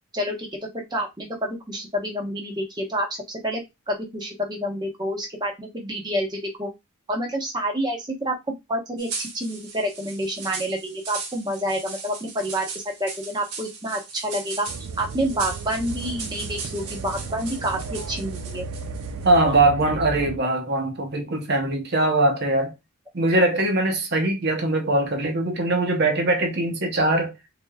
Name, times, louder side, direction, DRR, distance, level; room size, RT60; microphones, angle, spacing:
voice 1, 0.1-0.5 0.7-3.6 3.9-6.7 7.1-14.7 15.0-18.7, equal, 20° right, 0.9 m, -28 dB
sound 1, 9.0-19.3, right 4 dB, 90° right, 1.1 m, -38 dB
sound 2, 14.7-20.4, right 4 dB, 70° right, 0.4 m, -34 dB
voice 2, 19.2-22.7 23.1-27.3, right 2 dB, 45° right, 0.9 m, -21 dB
3.8 x 3.4 x 2.3 m
head